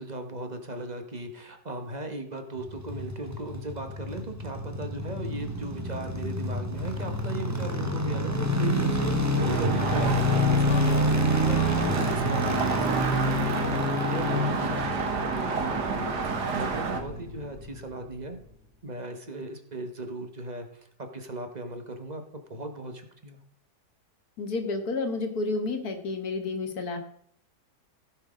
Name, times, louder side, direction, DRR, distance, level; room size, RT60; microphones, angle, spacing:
voice 1, 0.0-18.4 18.8-22.2 22.5-23.4, right 2 dB, 30° right, 6 dB, 1.1 m, -37 dB
sound 1, 2.6-17.8 18.1-18.2, equal, 15° right, 0.8 m, -28 dB
sound 2, 9.4-17.0, right 4 dB, 85° right, 1.9 m, -31 dB
sound 3, 9.7-13.7, left 8 dB, 85° left, 1.5 m, -43 dB
voice 2, 24.4-27.0, left 3 dB, 70° left, 5 dB, 1.9 m, -30 dB
15.5 x 5.5 x 5.0 m, 0.64 s
omnidirectional pair, 1.7 m